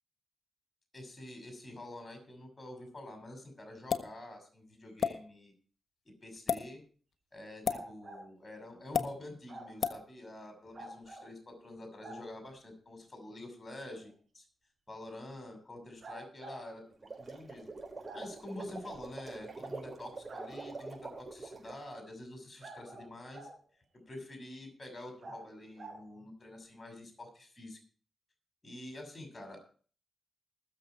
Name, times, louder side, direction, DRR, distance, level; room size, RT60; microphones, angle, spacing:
voice 1, 0.9-5.5 6.0-6.8 7.3-14.4 14.9-16.8 17.2-17.7 18.1-23.5 23.9-27.8 28.6-29.6, left 1 dB, 30° left, 4 dB, 6.5 m, -47 dB
sound 1, 3.9-4.1 5.0-5.1 6.4-6.6 7.6-7.8 8.9-9.1 9.8-10.0, left 6 dB, 65° left, 1.3 m, -30 dB
Dog Barking Single A, 7.6-8.2 9.5-10.0 10.7-11.3 12.0-12.2 14.0-14.1 16.0-16.6 18.0-18.2 20.3-21.0 22.6-23.5 25.2-25.4 25.8-26.0, right 2 dB, 60° right, 4.3 m, -47 dB
sound 2, 16.9-21.8, right 3 dB, 40° right, 4.6 m, -45 dB
20.5 x 7.0 x 4.5 m, 0.42 s
supercardioid pair, 45°, 0 cm